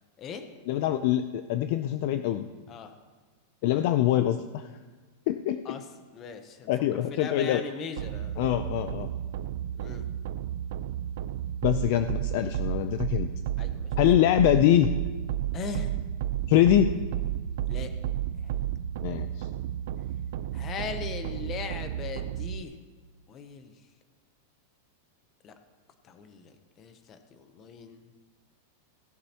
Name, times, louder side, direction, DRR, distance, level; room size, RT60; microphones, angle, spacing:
voice 1, 0.7-2.5 3.6-4.7 5.3-5.8 6.7-7.6 8.4-9.1 11.6-13.3 14.0-14.9 16.5-16.9 19.0-19.3, left 12 dB, 40° left, 10 dB, 0.4 m, -24 dB
voice 2, 6.1-8.4 9.8-10.1 13.6-13.9 15.5-15.9 17.7-17.9 18.4-18.6 20.5-22.7 23.3-23.7 25.4-25.5 26.0-28.1, left 6 dB, 20° left, 8 dB, 0.8 m, -39 dB
sound 1, 8.0-22.6, right 11 dB, 55° right, 0.4 m, -32 dB
16.5 x 11.5 x 2.9 m, 1.3 s
supercardioid pair, 180°, 0 cm